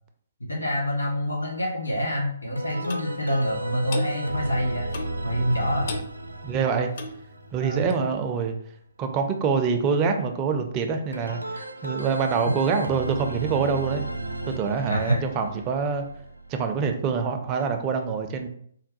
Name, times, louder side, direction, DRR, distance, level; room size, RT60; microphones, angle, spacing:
voice 1, 0.4-4.8 5.2-5.9 7.6-7.9 12.5-12.6 14.9-15.2, equal, 75° left, -2 dB, 1.4 m, -26 dB
sound 1, 2.6-8.4 11.1-17.1, right 1 dB, 85° right, 0.4 m, -35 dB
Clock, 2.9-3.1 3.9-4.1 4.9-5.2 5.9-6.1 6.9-7.2 7.9-8.0, left 4 dB, 45° left, 0.4 m, -35 dB
voice 2, 6.4-6.9 7.5-8.5 9.0-14.1 14.4-16.0 16.5-18.5, right 5 dB, 25° right, 5 dB, 0.4 m, -25 dB
3.8 x 2.1 x 2.6 m, 0.64 s
figure-of-eight pair, 130°, 0 cm